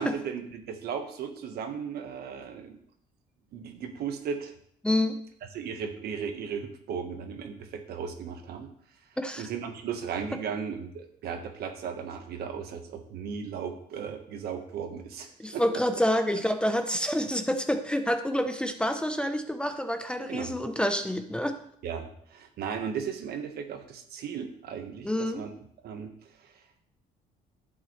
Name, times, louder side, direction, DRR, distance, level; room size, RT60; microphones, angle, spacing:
voice 1, 0.0-2.8 3.5-4.5 5.5-8.7 9.4-15.8 20.3-20.5 21.8-25.5 25.8-26.6, right 7 dB, 70° right, 5 dB, 1.4 m, -36 dB
voice 2, 4.8-5.2 9.2-9.5 15.4-21.6 25.0-25.4, equal, 5° left, 7 dB, 0.7 m, -28 dB
11.5 x 8.0 x 3.2 m, 0.66 s
cardioid pair, 110°, 17 cm